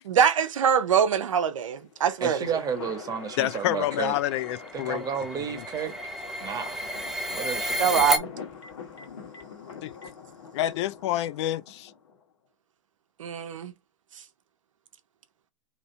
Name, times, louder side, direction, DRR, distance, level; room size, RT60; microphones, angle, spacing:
voice 1, 0.1-2.6 7.8-8.3 13.2-13.7, right 8 dB, 85° right, 0.7 m, -23 dB
sound 1, 1.8-12.2, left 6 dB, 75° left, 1.4 m, -44 dB
voice 2, 2.2-4.2 4.7-6.0 6.4-6.8 7.3-8.2, right 6 dB, 20° right, 1.2 m, -32 dB
voice 3, 3.4-5.0 9.8-9.9 10.5-11.9, left 13 dB, 60° left, 0.4 m, -28 dB
sound 2, 3.6-8.2, equal, ahead, 0.6 m, -32 dB
Telephone, 6.0-6.2 6.8-7.0 7.6-7.8 8.5-9.4 9.9-10.1, equal, 30° left, 1.7 m, -47 dB
2.9 x 2.7 x 4.4 m
hypercardioid pair, 105°, 16 cm